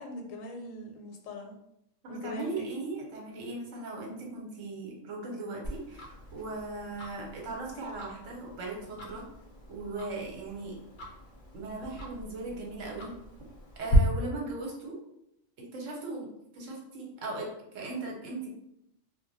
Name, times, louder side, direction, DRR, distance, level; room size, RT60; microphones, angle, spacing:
voice 1, 0.0-1.6 2.1-2.7, left 1 dB, 85° left, 3 dB, 1.0 m, -41 dB
voice 2, 2.0-9.2 9.7-10.8 11.5-13.1 13.8-14.9 15.7-16.3 16.5-18.5, right 2 dB, 75° right, -1 dB, 1.1 m, -38 dB
Tick-tock, 5.6-14.0, left 1 dB, 50° left, 0.6 m, -40 dB
2.2 x 2.2 x 3.9 m, 0.81 s
omnidirectional pair, 1.3 m